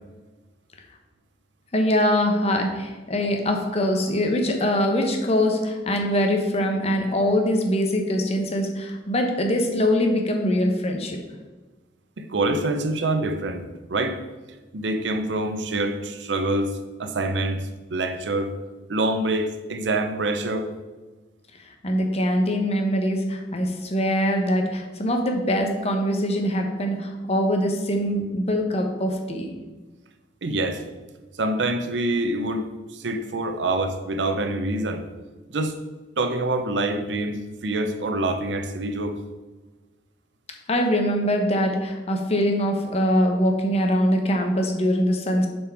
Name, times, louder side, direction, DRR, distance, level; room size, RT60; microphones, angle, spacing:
voice 1, 1.7-11.2 21.8-29.5 40.7-45.5, equal, 35° left, 3 dB, 0.9 m, -23 dB
voice 2, 12.2-14.2 14.7-18.5 18.9-20.7 30.4-30.8 31.4-35.1 35.5-35.8 36.2-39.2, right 2 dB, 90° right, 7 dB, 0.7 m, -26 dB
6.9 x 4.4 x 4.4 m, 1.2 s
head